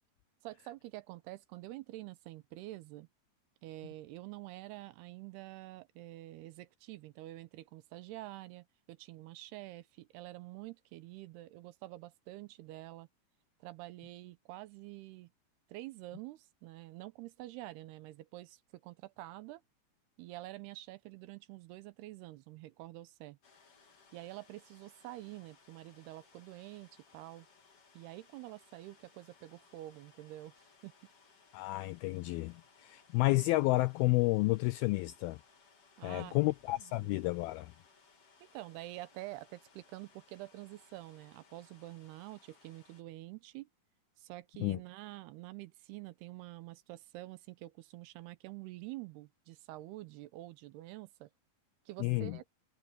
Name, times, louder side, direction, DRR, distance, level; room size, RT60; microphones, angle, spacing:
voice 1, 0.4-3.1 3.6-13.1 13.6-15.3 15.7-19.6 20.2-23.4 24.1-27.5 27.9-30.9 36.0-37.1 38.4-43.7 44.2-51.3 51.9-52.4, right 17 dB, 80° right, 2.7 m, -47 dB
sound 1, 23.4-43.0, left 5 dB, 35° left, 3.6 m, -64 dB
voice 2, 31.5-35.4 36.0-37.7 44.6-44.8 52.0-52.4, left 21 dB, 85° left, 2.1 m, -31 dB
omnidirectional pair, 4.8 m